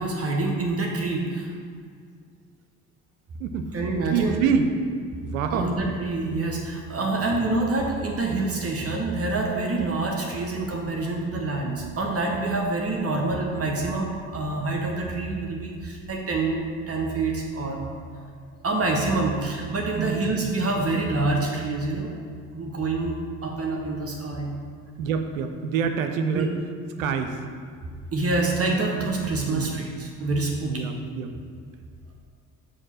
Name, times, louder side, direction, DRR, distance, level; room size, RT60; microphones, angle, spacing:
voice 1, 0.0-1.5 3.7-4.4 5.5-17.8 18.6-22.1 22.5-23.1 23.4-24.5 26.3-26.5 28.1-30.9, right 3 dB, 35° right, 0 dB, 0.9 m, -26 dB
voice 2, 4.1-4.7 5.2-5.7 7.0-7.3 20.0-20.5 25.0-26.5 27.0-27.4 29.3-29.8 30.6-31.3, right 6 dB, 90° right, 6 dB, 0.5 m, -27 dB
6.4 x 2.8 x 5.6 m, 2.1 s
hypercardioid pair, 50°, 40 cm